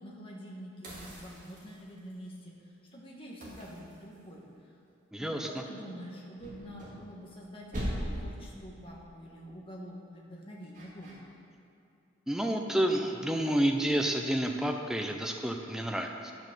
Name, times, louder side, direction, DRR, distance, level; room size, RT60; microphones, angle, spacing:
voice 1, 0.0-2.6 2.9-4.8 5.2-11.2, equal, 25° left, -3 dB, 1.6 m, -46 dB
sound 1, 0.8-2.1 3.4-4.6 6.4-7.4 7.7-8.4 10.7-11.1, equal, 40° right, 2.3 m, -39 dB
voice 2, 5.1-5.5 12.3-16.3, right 1 dB, 5° right, 3 dB, 0.6 m, -29 dB
9.8 x 6.2 x 6.9 m, 2.6 s
head